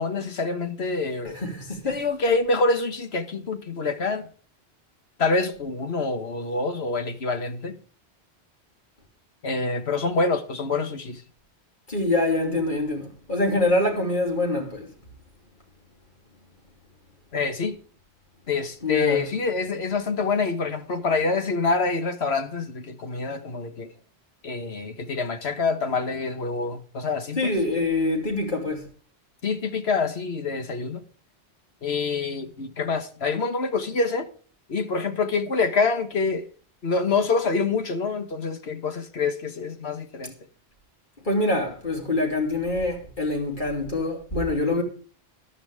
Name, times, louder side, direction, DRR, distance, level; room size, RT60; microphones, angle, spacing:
voice 1, 0.0-1.4 1.8-4.3 5.2-7.8 9.4-11.2 17.3-17.8 18.5-23.9 24.4-27.5 29.4-31.0 31.8-34.3 34.7-36.5 36.8-40.3, left 4 dB, 70° left, 1.6 m, -26 dB
voice 2, 1.3-2.0 11.9-14.9 18.8-19.2 27.4-28.9 41.2-44.8, left 2 dB, 50° left, 3.2 m, -25 dB
13.5 x 11.5 x 3.5 m
omnidirectional pair, 1.1 m